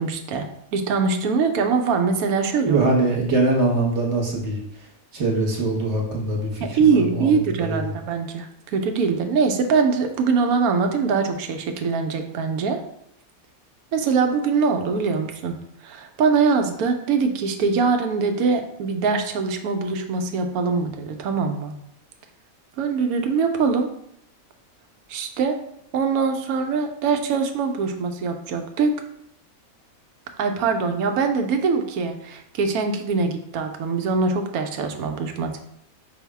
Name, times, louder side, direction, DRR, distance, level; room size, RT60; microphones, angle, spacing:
voice 1, 0.0-2.9 6.6-12.8 13.9-15.6 15.8-21.7 22.8-23.9 25.1-25.6 25.9-29.0 30.4-35.6, right 5 dB, 90° right, 5 dB, 1.1 m, -23 dB
voice 2, 2.6-7.9, right 2 dB, 55° right, -1 dB, 1.2 m, -23 dB
5.3 x 2.1 x 4.6 m, 0.72 s
omnidirectional pair, 1.5 m